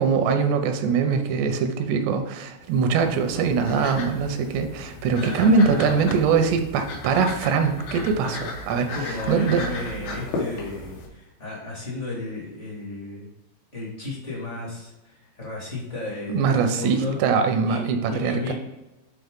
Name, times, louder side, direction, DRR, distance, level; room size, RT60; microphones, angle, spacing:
voice 1, 0.0-8.9 9.3-9.6 16.3-18.5, right 5 dB, 80° right, 6 dB, 2.9 m, -22 dB
sound 1, 2.6-11.1, left 2 dB, 70° left, 3.1 m, -35 dB
voice 2, 5.2-6.3 8.9-13.3 13.7-17.2 17.7-18.5, left 2 dB, 35° left, -4 dB, 1.1 m, -33 dB
9.1 x 4.1 x 3.6 m, 1.0 s
omnidirectional pair, 4.9 m